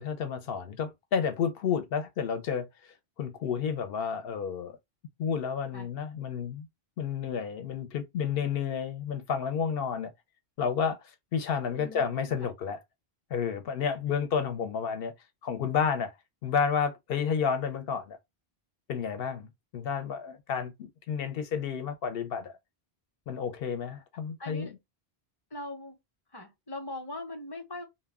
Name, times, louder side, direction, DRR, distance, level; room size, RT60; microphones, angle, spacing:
voice 1, 0.0-4.8 5.2-6.7 7.0-10.1 10.6-12.8 13.3-15.1 15.4-16.1 16.4-18.2 18.9-19.5 19.7-22.5 23.3-24.7, left 7 dB, 70° left, 0.7 m, -31 dB
voice 2, 11.7-12.3 24.4-24.7 25.5-26.0 26.3-27.8, left 1 dB, 25° left, 0.7 m, -40 dB
2.1 x 2.1 x 3.4 m
omnidirectional pair, 1.1 m